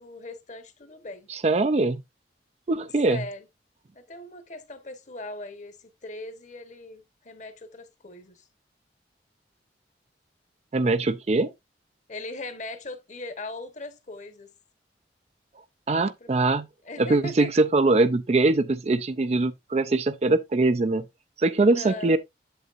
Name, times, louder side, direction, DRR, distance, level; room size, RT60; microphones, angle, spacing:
voice 1, 0.0-1.3 3.1-3.5 3.9-8.5 12.1-14.5 16.2-16.3 16.8-17.5 21.6-22.2, left 2 dB, 45° left, 1.1 m, -39 dB
voice 2, 1.3-2.0 2.7-3.2 10.7-11.5 15.9-16.7 17.0-21.1 21.4-22.2, right 2 dB, 35° right, 0.4 m, -22 dB
8.0 x 7.5 x 2.5 m
head